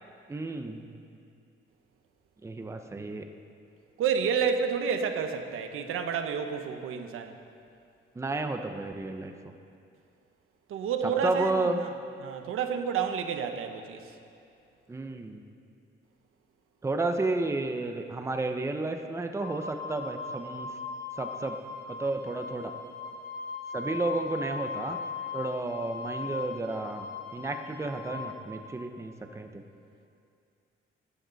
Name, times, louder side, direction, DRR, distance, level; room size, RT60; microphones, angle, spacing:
voice 1, 0.3-0.9 2.4-3.2 8.2-9.3 11.0-11.8 14.9-15.4 16.8-20.7 21.2-21.6 21.9-22.7 23.7-25.0 25.3-27.1 27.3-29.6, right 2 dB, 15° right, 6 dB, 0.7 m, -32 dB
voice 2, 4.0-7.4 10.7-11.9 12.2-14.1, right 6 dB, 90° right, 6 dB, 1.1 m, -30 dB
Wind instrument woodwind instrument, 19.4-28.4, left 5 dB, 55° left, 2.4 m, -39 dB
20.0 x 12.5 x 4.0 m, 2.5 s
cardioid pair, 150°, 21 cm